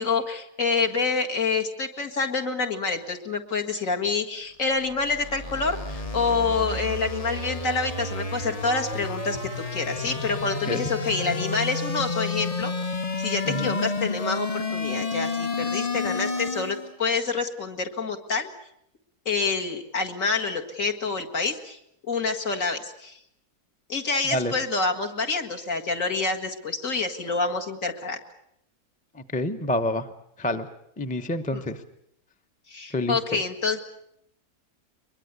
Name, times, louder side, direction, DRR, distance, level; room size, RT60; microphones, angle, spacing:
voice 1, 0.0-12.7 13.2-18.5 19.3-21.8 22.1-23.2 23.9-28.2 31.5-31.6 32.7-33.8, left 4 dB, 55° left, 2 dB, 2.3 m, -27 dB
sound 1, 4.7-16.9, left 3 dB, 30° left, 1.0 m, -30 dB
voice 2, 13.5-13.8 24.3-24.5 29.1-30.1 30.4-30.7 31.0-31.8 32.9-33.4, left 1 dB, 5° left, 7 dB, 0.8 m, -28 dB
23.0 x 22.0 x 8.2 m, 0.75 s
omnidirectional pair, 1.7 m